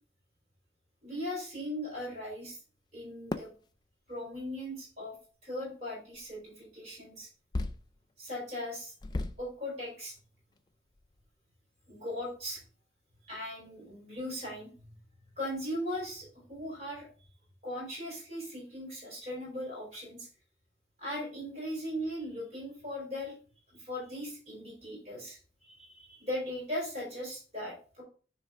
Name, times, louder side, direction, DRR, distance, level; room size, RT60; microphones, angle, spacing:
voice 1, 1.0-2.6 2.9-3.5 4.1-5.2 5.4-7.3 8.2-8.9 9.4-10.1 11.9-12.6 13.3-14.7 15.4-17.1 17.6-20.3 21.0-23.4 23.7-25.4 25.7-28.0, left 1 dB, 40° right, -3 dB, 3.7 m, -38 dB
sound 1, 3.3-3.6 4.8-4.9 6.1-6.3 7.5-8.0 8.4-8.5 9.0-9.6 10.2-10.3 10.6-10.7 11.0-11.3, left 2 dB, 25° left, 0.4 m, -35 dB
9.5 x 3.3 x 3.5 m, 0.39 s
head